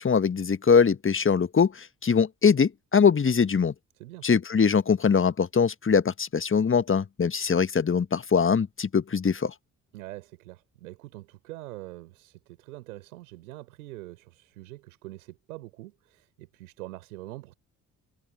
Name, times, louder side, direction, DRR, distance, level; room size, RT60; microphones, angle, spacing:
voice 1, 0.0-3.7 4.2-9.5, left 6 dB, 25° left, 1.6 m, -22 dB
voice 2, 4.0-4.3 9.9-17.5, right 18 dB, 75° right, 4.3 m, -44 dB
figure-of-eight pair, 40°, 44 cm